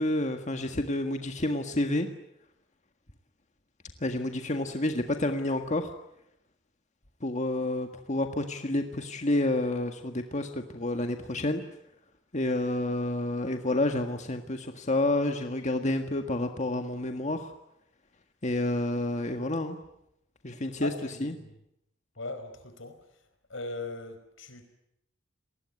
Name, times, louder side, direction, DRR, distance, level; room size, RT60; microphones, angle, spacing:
voice 1, 0.0-2.1 4.0-5.9 7.2-11.6 12.3-17.5 18.4-19.8 20.4-20.9 21.2-21.3, left 1 dB, 40° left, 6 dB, 1.7 m, -29 dB
voice 2, 20.8-21.5 22.2-23.0 23.5-24.6, left 2 dB, 85° left, 9 dB, 4.8 m, -39 dB
30.0 x 20.5 x 9.7 m, 0.81 s
head